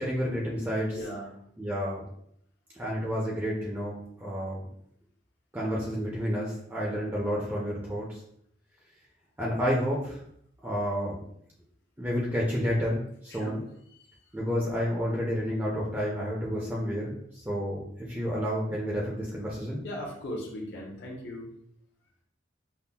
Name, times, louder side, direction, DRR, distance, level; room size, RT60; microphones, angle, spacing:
voice 1, 0.0-1.0 1.6-2.1 2.8-4.6 5.5-8.2 9.4-10.2 10.6-11.2 12.0-13.6 14.3-17.8 18.1-19.8, equal, 10° right, -5 dB, 0.5 m, -30 dB
voice 2, 0.9-1.4 13.3-13.6 13.9-14.2 19.8-21.5, equal, 60° left, -3 dB, 0.7 m, -38 dB
5.4 x 2.1 x 2.2 m, 0.69 s
head